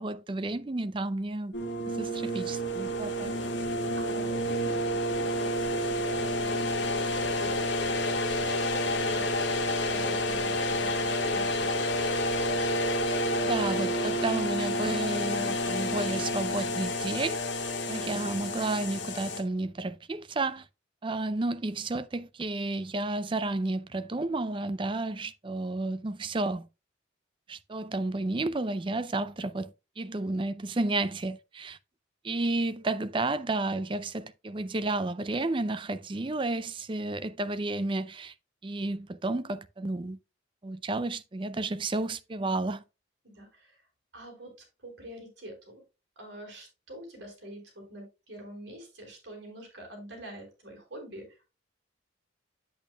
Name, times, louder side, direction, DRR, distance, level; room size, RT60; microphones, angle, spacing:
voice 1, 0.0-1.5 1.9-3.3 13.4-17.4 17.9-20.7 21.0-26.7 27.5-31.8 32.2-38.3 38.6-40.2 40.6-42.8, right 2 dB, 25° right, 0.4 m, -32 dB
sound 1, 1.5-19.4, left 1 dB, 65° left, 1.7 m, -29 dB
voice 2, 4.0-11.8 43.2-43.8 44.1-44.5 44.8-45.8 46.2-51.5, right 1 dB, 60° right, 4.3 m, -46 dB
8.5 x 8.3 x 2.2 m
head